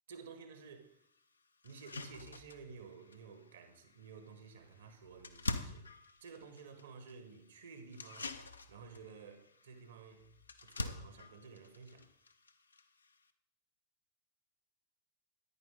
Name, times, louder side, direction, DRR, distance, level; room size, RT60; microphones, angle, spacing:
voice 1, 0.1-0.9 1.6-8.3 8.7-10.3 10.6-12.1, right 5 dB, 65° right, 1.3 m, -53 dB
sound 1, 0.6-0.7 1.2-1.3 1.6-13.3, left 3 dB, 75° left, 0.6 m, -47 dB
9.7 x 9.6 x 3.9 m
figure-of-eight pair, 90°, 0 cm